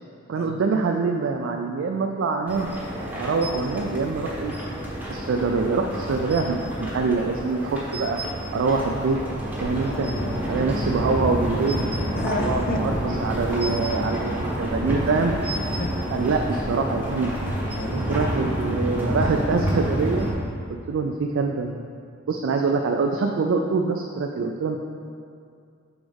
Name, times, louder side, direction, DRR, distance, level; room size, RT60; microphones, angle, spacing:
voice 1, 0.3-2.7 3.2-4.5 5.1-8.2 8.5-9.2 9.6-10.1 10.5-11.8 12.4-15.3 16.1-17.3 17.9-20.3 20.9-21.9 22.3-24.8, right 4 dB, 65° right, 3 dB, 0.3 m, -25 dB
sound 1, 2.5-20.3, right 1 dB, 10° right, 0.9 m, -28 dB
voice 2, 9.8-10.6 12.1-12.9 13.2-13.3 14.6-14.8 15.8-16.2 16.5-16.7 17.4-18.3, left 3 dB, 45° left, 5 dB, 0.4 m, -34 dB
7.1 x 4.0 x 3.5 m, 2.4 s
head